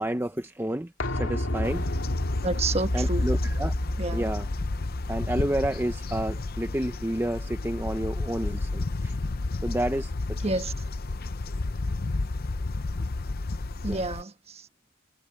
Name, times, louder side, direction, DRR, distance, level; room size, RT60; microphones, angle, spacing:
voice 1, 0.0-1.9 2.9-3.7 4.1-4.4 5.1-9.1 9.6-10.5 13.9-14.0, right 1 dB, 10° right, 0.8 m, -30 dB
sound 1, 1.0-6.6 6.9-7.0, left 1 dB, 65° left, 2.5 m, -30 dB
sound 2, 1.6-14.2, left 2 dB, 45° left, 0.7 m, -32 dB
voice 2, 2.4-3.3 4.0-4.3 10.4-10.7 13.8-14.7, right 2 dB, 30° right, 1.3 m, -30 dB
head